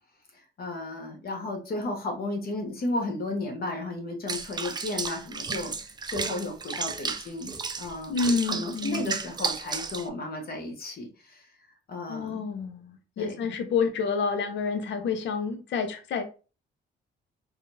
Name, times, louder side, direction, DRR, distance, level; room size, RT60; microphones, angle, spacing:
voice 1, 0.6-8.2 8.4-11.5 11.9-12.4 13.2-13.5, left 2 dB, 50° left, 1.0 m, -34 dB
Water / Bathtub (filling or washing), 4.3-10.1, right 5 dB, 20° right, 0.3 m, -33 dB
voice 2, 8.1-9.1 12.1-12.9 13.2-16.2, left 5 dB, 65° left, 0.7 m, -28 dB
3.5 x 2.3 x 2.7 m
cardioid pair, 90°, 20 cm